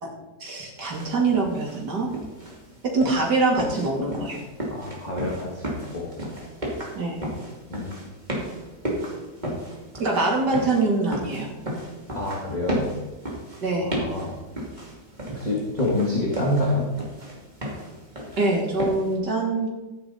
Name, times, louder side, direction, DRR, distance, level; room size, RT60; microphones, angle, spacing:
voice 1, 0.4-2.1 2.8-4.4 6.9-7.2 10.0-11.5 13.6-13.9 18.4-19.7, right 3 dB, 90° right, -1 dB, 3.2 m, -24 dB
sound 1, 0.8-19.2, equal, 25° right, 2.9 m, -34 dB
voice 2, 4.7-6.1 7.7-8.0 12.1-12.9 13.8-14.4 15.3-16.9, left 1 dB, 25° left, -3 dB, 2.0 m, -27 dB
13.0 x 9.8 x 4.2 m, 1.1 s
omnidirectional pair, 1.7 m